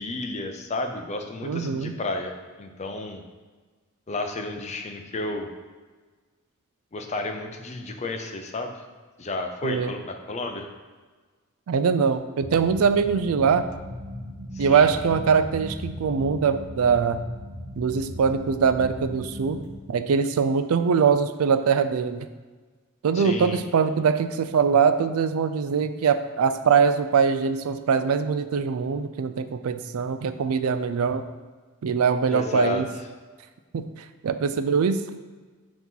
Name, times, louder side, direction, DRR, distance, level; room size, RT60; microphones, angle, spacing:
voice 1, 0.0-3.2 4.1-5.5 6.9-8.8 9.2-10.7 14.5-14.9 23.1-23.6 32.3-32.8, left 2 dB, 30° left, 4 dB, 0.5 m, -32 dB
voice 2, 1.4-1.9 9.6-9.9 11.7-13.6 14.6-17.3 17.8-19.6 19.9-22.3 23.0-31.2 31.8-32.9 33.7-33.8 34.2-35.0, right 6 dB, 85° right, 11 dB, 0.4 m, -22 dB
sound 1, 12.4-19.6, left 1 dB, 55° right, 1.8 m, -37 dB
5.9 x 2.9 x 5.4 m, 1.4 s
head